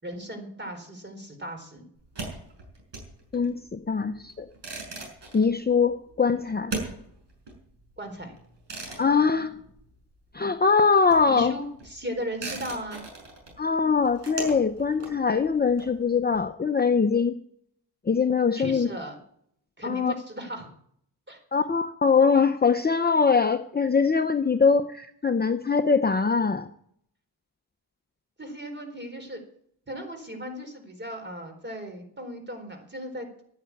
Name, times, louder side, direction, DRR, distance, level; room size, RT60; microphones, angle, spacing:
voice 1, 0.0-1.9 8.0-8.3 11.3-13.0 18.5-19.2 19.8-20.7 21.3-21.4 28.4-29.4 29.9-33.3, equal, 25° right, 5 dB, 4.2 m, -36 dB
sound 1, 2.0-10.3 10.6-16.4, right 3 dB, 70° right, 6.0 m, -40 dB
voice 2, 3.3-4.4 5.3-6.8 9.0-9.5 10.3-11.5 13.6-17.4 18.1-18.9 19.8-20.1 21.5-26.7, left 5 dB, 20° left, 7 dB, 0.7 m, -22 dB
12.0 x 9.9 x 8.4 m, 0.68 s
cardioid pair, 85°, 45 cm